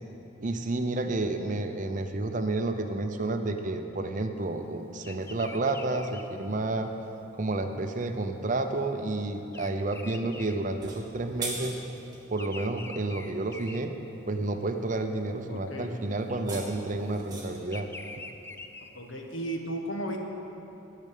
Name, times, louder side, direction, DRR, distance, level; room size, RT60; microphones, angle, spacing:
voice 1, 0.4-6.9 7.3-11.8 12.3-13.9 14.3-17.9, right 2 dB, 40° right, 6 dB, 0.6 m, -30 dB
Bird vocalization bird call bird song, 5.0-11.4 11.7-14.6 15.0-15.4 16.4-19.3, left 2 dB, 10° left, 0.4 m, -46 dB
sound 1, 10.7-12.2 16.2-17.7, right 3 dB, 20° right, 1.8 m, -39 dB
voice 2, 15.5-16.0 18.9-20.2, right 1 dB, 70° left, 2 dB, 1.3 m, -34 dB
10.5 x 6.6 x 8.4 m, 2.9 s
head